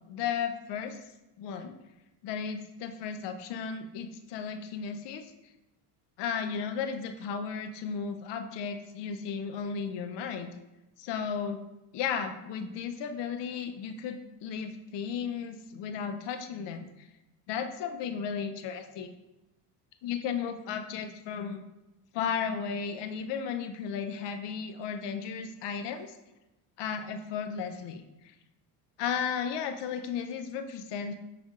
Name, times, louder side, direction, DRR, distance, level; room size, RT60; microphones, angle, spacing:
voice 1, 0.1-1.0 1.4-1.7 2.2-5.3 6.2-10.5 11.0-11.6 11.9-16.9 17.5-19.1 20.0-21.6 22.1-26.1 26.8-28.0 29.0-31.2, left 6 dB, 60° left, 7 dB, 0.7 m, -34 dB
6.4 x 3.4 x 2.4 m, 0.98 s
supercardioid pair, 75°, 48 cm